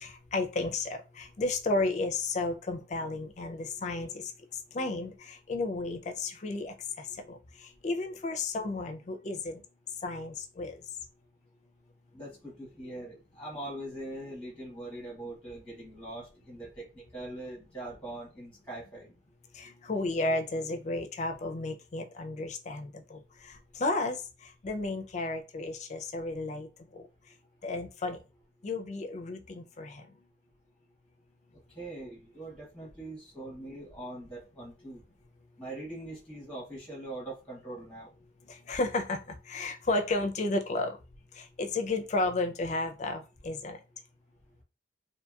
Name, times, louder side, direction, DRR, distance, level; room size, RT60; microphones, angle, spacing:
voice 1, 0.0-4.3 4.7-7.4 7.8-9.6 10.0-10.7 19.5-24.2 24.6-26.7 26.9-27.0 27.6-28.2 28.6-30.1 38.5-41.0 41.4-43.8, left 2 dB, 40° left, 4 dB, 0.4 m, -33 dB
voice 2, 12.1-19.1 31.7-35.0 35.6-38.1, right 1 dB, 5° left, -3 dB, 0.9 m, -42 dB
2.8 x 2.6 x 2.3 m, 0.31 s
head